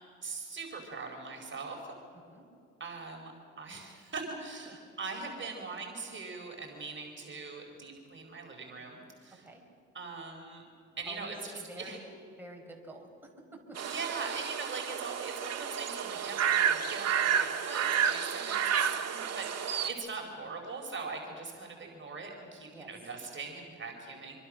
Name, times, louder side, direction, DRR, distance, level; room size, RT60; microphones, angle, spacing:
voice 1, 0.2-1.8 2.8-9.4 9.9-10.6 11.0-12.0 13.8-24.4, right 4 dB, 40° right, 1 dB, 4.6 m, -41 dB
voice 2, 11.1-12.1 12.4-13.8 18.8-19.0 20.2-20.5 22.7-22.9, right 1 dB, 5° right, 0 dB, 5.5 m, -49 dB
sound 1, 13.8-19.9, right 8 dB, 55° right, 1.7 m, -30 dB
25.5 x 24.0 x 6.4 m, 2.6 s
cardioid pair, 90°, 30 cm